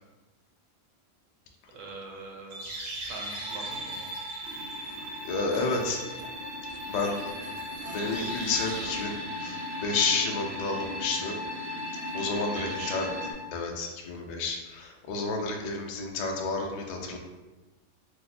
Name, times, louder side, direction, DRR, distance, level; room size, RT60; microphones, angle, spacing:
voice 1, 1.7-2.7 2.9-4.1 12.2-13.0, right 3 dB, 80° right, 0 dB, 1.0 m, -42 dB
sound 1, 2.5-13.3, left 1 dB, 65° right, 0.8 m, -36 dB
voice 2, 5.2-6.0 6.9-7.2 7.9-9.1 9.4-11.3 12.1-13.1 13.5-17.2, left 3 dB, 75° left, 0 dB, 0.4 m, -30 dB
2.7 x 2.0 x 4.0 m, 1.1 s
omnidirectional pair, 1.3 m